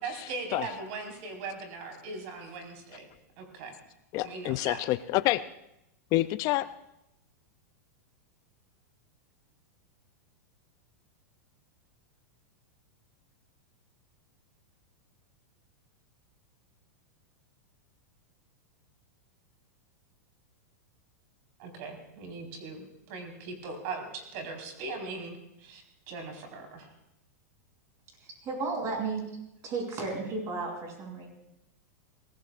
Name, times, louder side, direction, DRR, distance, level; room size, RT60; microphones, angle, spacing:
voice 1, 0.0-3.1 3.4-3.7 4.2-4.8 21.6-25.8 26.1-26.9, right 3 dB, 55° right, 3 dB, 4.6 m, -39 dB
voice 2, 4.1-5.4 6.1-6.7, left 17 dB, 40° left, 13 dB, 0.5 m, -27 dB
voice 3, 28.4-29.2 29.6-31.3, right 3 dB, 35° right, 1 dB, 7.3 m, -33 dB
23.5 x 19.5 x 2.5 m, 0.84 s
hypercardioid pair, 120°, 9 cm